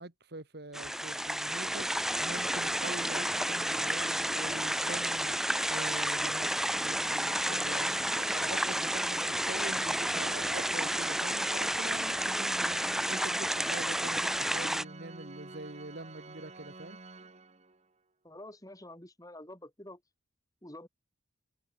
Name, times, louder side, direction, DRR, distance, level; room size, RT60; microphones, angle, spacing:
voice 1, 0.0-6.5 6.8-17.0, right 2 dB, 55° right, 1.8 m, -44 dB
sound 1, 0.7-14.8, right 1 dB, ahead, 0.7 m, -31 dB
sound 2, 1.4-6.4, right 5 dB, 85° right, 6.1 m, -62 dB
Organ, 7.0-17.9, right 3 dB, 35° right, 1.9 m, -49 dB
voice 2, 18.2-20.0 20.6-20.9, left 1 dB, 20° left, 5.3 m, -48 dB
head